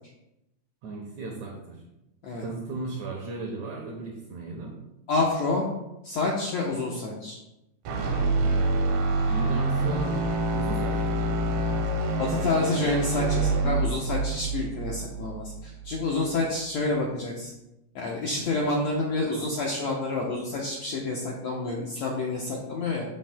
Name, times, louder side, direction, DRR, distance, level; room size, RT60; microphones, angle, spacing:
voice 1, 0.8-1.8 2.4-4.8 8.4-8.9 9.3-10.2 10.5-11.8, right 3 dB, 70° right, 0 dB, 1.9 m, -36 dB
voice 2, 5.1-5.6 6.0-7.4 12.2-17.5 17.9-23.0, left 3 dB, 75° left, -2 dB, 1.6 m, -28 dB
sound 1, 7.8-16.0, right 2 dB, 90° right, 3.2 m, -26 dB
12.0 x 6.9 x 2.2 m, 0.91 s
omnidirectional pair, 4.4 m